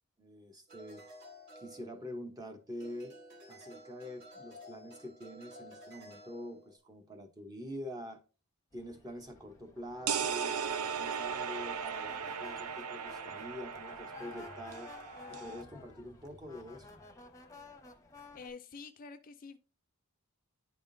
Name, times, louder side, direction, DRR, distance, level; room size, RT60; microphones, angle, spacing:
voice 1, 0.2-1.0 1.5-3.2 3.5-8.2 8.7-14.9 15.3-17.0, equal, 15° right, 0.8 m, -46 dB
sound 1, 0.7-2.4 2.8-6.8, equal, 55° right, 1.6 m, -53 dB
sound 2, 8.7-18.5, left 4 dB, 15° left, 0.8 m, -53 dB
sound 3, 10.1-15.6, right 7 dB, 80° right, 0.5 m, -37 dB
voice 2, 18.3-19.6, left 4 dB, 40° left, 0.4 m, -48 dB
10.5 x 3.5 x 2.6 m
head